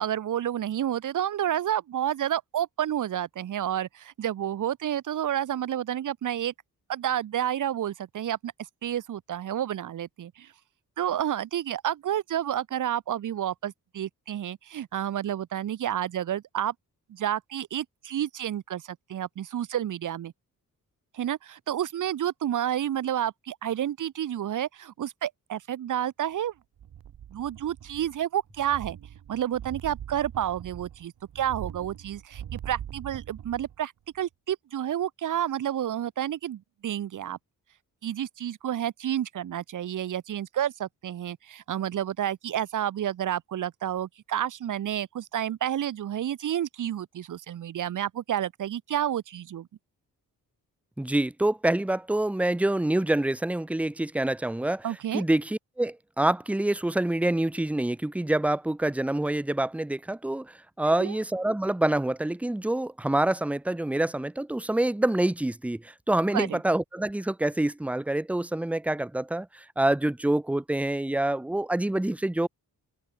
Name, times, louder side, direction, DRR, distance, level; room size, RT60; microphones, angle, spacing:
voice 1, 0.0-6.5 6.9-8.5 8.8-10.5 11.0-16.7 17.1-20.3 21.1-26.5 27.3-29.0 29.3-37.4 38.0-49.7 54.8-55.2 60.9-61.1 66.3-66.6, right 11 dB, 60° right, 1.0 m, -30 dB
sound 1, 26.8-28.2 28.5-33.8 34.2-34.3, right 10 dB, 80° right, 6.0 m, -42 dB
voice 2, 51.0-54.9 55.1-72.5, right 1 dB, 5° right, 0.6 m, -26 dB
open air
wide cardioid pair, 155°, 35 cm